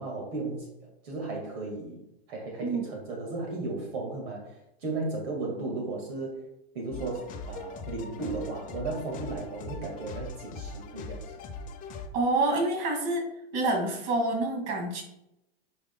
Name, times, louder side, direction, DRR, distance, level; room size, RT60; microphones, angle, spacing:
voice 1, 0.0-2.0 2.3-6.4 6.7-11.4, right 3 dB, 65° right, 0 dB, 2.0 m, -35 dB
sound 1, 6.9-12.1, left 3 dB, 25° left, 0.8 m, -40 dB
voice 2, 12.1-13.3 13.5-15.0, right 2 dB, 45° right, 1 dB, 2.2 m, -27 dB
9.6 x 5.1 x 2.3 m, 0.85 s
hypercardioid pair, 125°, 33 cm